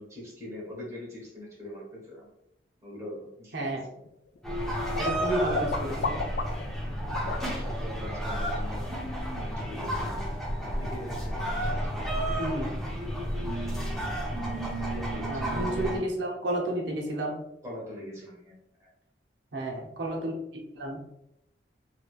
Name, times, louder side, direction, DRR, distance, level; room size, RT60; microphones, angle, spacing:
voice 1, 0.0-2.3 2.8-4.0 7.0-8.9 9.4-12.1 14.8-15.7 17.6-18.9, left 1 dB, 15° right, -5 dB, 1.1 m, -43 dB
sound 1, 4.0-6.7 7.1-7.4 10.9-11.0 11.4-11.8, left 4 dB, 65° left, 0.3 m, -34 dB
sound 2, 4.4-16.0, equal, ahead, 0.8 m, -31 dB
voice 2, 5.0-6.2 12.4-12.7 15.3-17.4 19.5-20.4 20.7-21.0, right 1 dB, 80° right, 0 dB, 0.7 m, -31 dB
3.1 x 2.8 x 2.3 m, 0.80 s
head